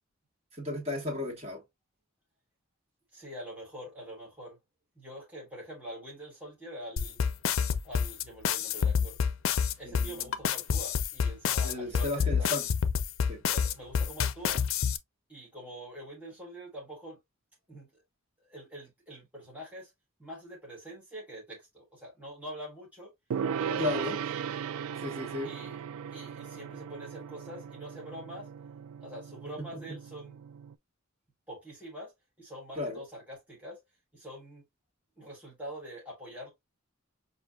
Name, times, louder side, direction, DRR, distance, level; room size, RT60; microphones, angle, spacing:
voice 1, 0.6-1.6 9.8-10.4 11.6-12.7 13.3-13.4 23.8-24.2 25.0-25.5 29.7-30.0 32.7-33.0, left 2 dB, 30° right, 1.4 m, -34 dB
voice 2, 3.1-4.6 5.0-7.2 7.8-9.2 9.8-12.6 13.4-14.6 15.3-17.2 17.7-18.0 18.4-19.9 20.2-23.1 23.6-24.2 25.4-25.8 26.1-28.5 29.0-30.4 31.5-32.1 32.4-33.8 34.1-34.6 35.2-36.5, equal, 5° right, 1.0 m, -45 dB
sound 1, 7.0-15.0, left 7 dB, 65° left, 0.5 m, -27 dB
Gong, 23.3-30.7, right 7 dB, 75° right, 0.3 m, -37 dB
5.9 x 2.6 x 2.3 m
head